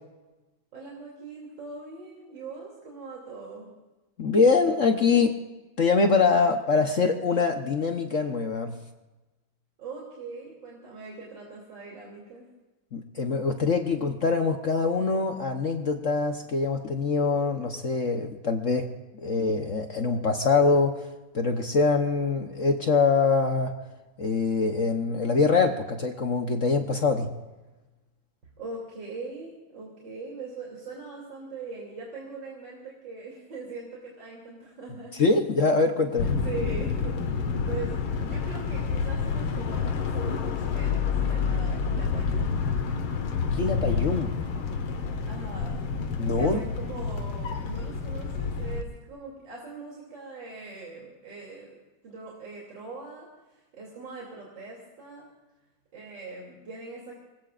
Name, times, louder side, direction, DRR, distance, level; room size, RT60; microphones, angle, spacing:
voice 1, 0.7-3.7 9.8-12.5 28.6-35.1 36.2-42.6 45.3-45.8 46.4-51.8 52.0-55.3 55.9-57.2, right 3 dB, 55° right, -3 dB, 3.6 m, -41 dB
voice 2, 4.2-5.4 5.8-8.8 12.9-18.9 19.2-21.1 21.3-23.8 24.2-27.3 35.2-36.3 43.5-44.3 46.2-46.6, left 4 dB, 50° left, 5 dB, 1.0 m, -24 dB
sound 1, 36.2-48.8, left 5 dB, 75° left, 2.1 m, -28 dB
25.0 x 20.5 x 2.5 m, 1.1 s
omnidirectional pair, 2.4 m